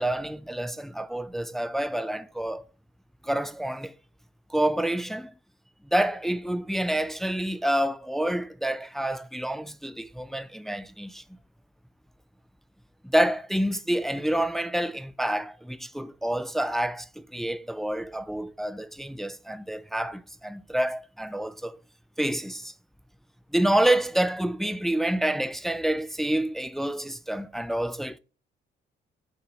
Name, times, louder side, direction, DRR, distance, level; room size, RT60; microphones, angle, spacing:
voice 1, 0.0-2.6 3.2-3.9 4.5-5.3 5.9-11.2 13.0-21.8 22.2-22.7 23.5-28.2, right 1 dB, ahead, 0.3 m, -28 dB
8.3 x 4.2 x 3.0 m
cardioid pair, 90°, 20 cm